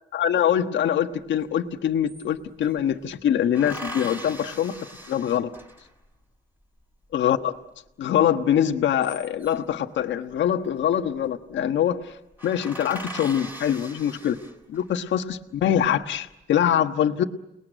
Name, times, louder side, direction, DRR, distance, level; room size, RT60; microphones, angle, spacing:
voice 1, 0.1-4.7 5.1-5.5 7.1-7.5 8.0-12.2 12.4-14.4 14.7-17.2, left 9 dB, 70° left, 6 dB, 1.4 m, -24 dB
sound 1, 1.4-1.5 1.7-2.8 3.5-6.1 8.7-9.7 10.9-11.3 11.6-11.7 12.0-12.1 12.4-14.9 15.5-16.2, equal, 10° right, 5.9 m, -40 dB
29.5 x 20.0 x 9.1 m, 0.91 s
cardioid pair, 90°, 20 cm